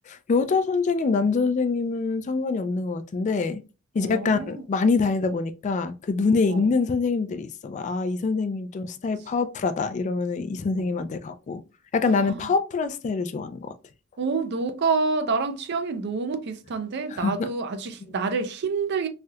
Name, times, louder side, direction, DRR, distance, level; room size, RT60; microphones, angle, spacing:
voice 1, 0.1-3.6 3.9-11.6 11.9-13.7 17.2-17.5, left 4 dB, 35° left, 0.3 m, -25 dB
voice 2, 4.0-4.6 6.4-6.7 10.8-11.0 12.1-12.5 14.2-19.1, right 4 dB, 55° right, 0.4 m, -28 dB
3.2 x 2.7 x 2.3 m
head